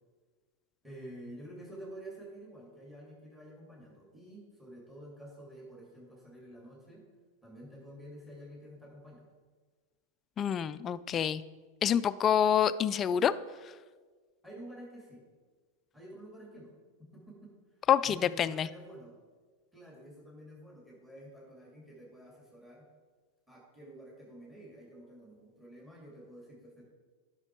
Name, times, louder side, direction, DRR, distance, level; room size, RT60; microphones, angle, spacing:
voice 1, 0.8-7.0 7.4-9.3 14.4-15.2 15.9-16.7 17.1-17.5 18.0-19.1 19.7-22.8 23.5-26.9, right 1 dB, 5° right, -3 dB, 2.5 m, -49 dB
voice 2, 10.4-11.4 11.8-13.3 17.9-18.7, left 9 dB, 30° left, 14 dB, 0.4 m, -27 dB
10.5 x 6.0 x 4.6 m, 1.5 s
hypercardioid pair, 115°, 0 cm